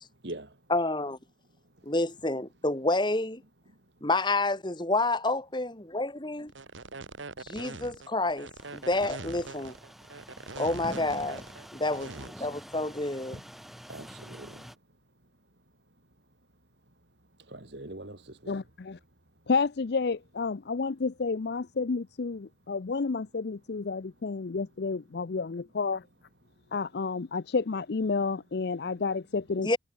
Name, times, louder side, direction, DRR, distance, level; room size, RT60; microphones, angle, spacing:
voice 1, 0.7-1.2 1.8-3.4 4.0-6.5 7.4-9.7 10.6-11.4 11.7-12.1 12.4-13.4 29.6-29.8, left 2 dB, 25° left, 1.8 m, -29 dB
sound 1, 6.5-12.3, right 3 dB, 85° right, 2.0 m, -42 dB
sound 2, 8.6-14.8, equal, ahead, 3.8 m, -47 dB
voice 2, 11.9-12.5 13.9-14.6 17.5-18.6, right 1 dB, 60° right, 3.0 m, -43 dB
voice 3, 18.5-19.0 19.5-26.0 26.7-29.8, left 4 dB, 60° left, 0.5 m, -30 dB
head